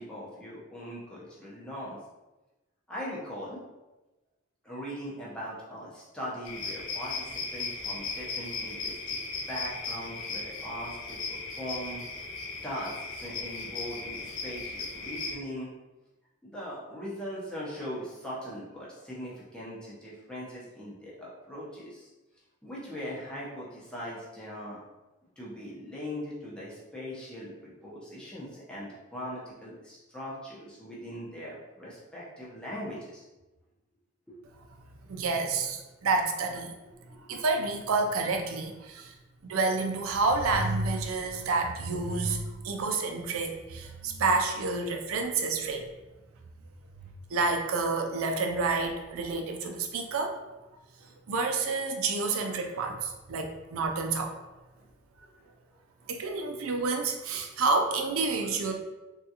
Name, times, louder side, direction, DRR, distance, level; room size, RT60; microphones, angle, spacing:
voice 1, 0.0-2.0 2.9-3.6 4.6-9.2 9.5-12.0 12.6-15.7 16.4-22.1 22.6-24.8 25.4-33.2 37.0-37.3 51.0-51.1 54.7-54.8 55.2-55.5 56.0-56.1, equal, 5° left, -7 dB, 0.7 m, -40 dB
sound 1, 6.4-15.4, left 4 dB, 70° left, 0.5 m, -37 dB
voice 2, 35.1-36.7 37.3-39.1 39.4-45.9 47.3-50.4 51.3-54.3 56.1-58.7, right 3 dB, 90° right, 4 dB, 0.4 m, -29 dB
3.6 x 2.4 x 2.8 m, 1.1 s
head